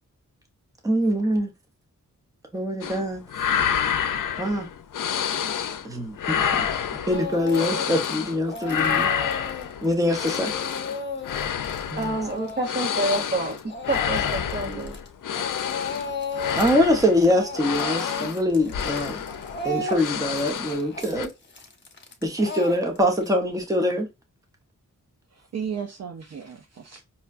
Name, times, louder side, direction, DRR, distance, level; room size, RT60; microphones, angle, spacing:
voice 1, 0.8-1.5 2.5-3.6 4.4-4.7 5.8-6.7 7.1-9.1 9.8-10.5 11.9-12.2 16.5-19.2 19.6-21.3 22.2-24.1, left 1 dB, 10° right, 0.8 m, -24 dB
sound 1, 2.8-3.0 3.3-5.9 6.2-8.4 8.7-20.9 21.1-21.3, left 8 dB, 75° left, 0.5 m, -28 dB
Speech / Crying sobbing, 7.1-8.1 8.4-15.1 15.3-16.8 17.0-23.3, left 3 dB, 35° left, 0.8 m, -34 dB
voice 2, 12.0-14.9, right 2 dB, 35° right, 1.1 m, -28 dB
voice 3, 25.3-27.0, right 7 dB, 55° right, 0.5 m, -34 dB
5.4 x 2.2 x 2.3 m
wide cardioid pair, 135°, 32 cm